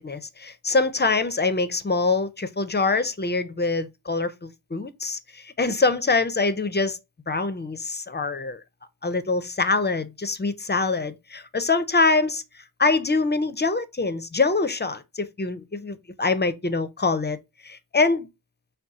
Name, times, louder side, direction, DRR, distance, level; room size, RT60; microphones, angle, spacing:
voice 1, 0.0-7.0 7.3-8.6 9.0-17.4 17.6-18.3, left 3 dB, 25° left, 0.4 m, -24 dB
4.1 x 2.2 x 3.6 m
wide cardioid pair, 50°, 47 cm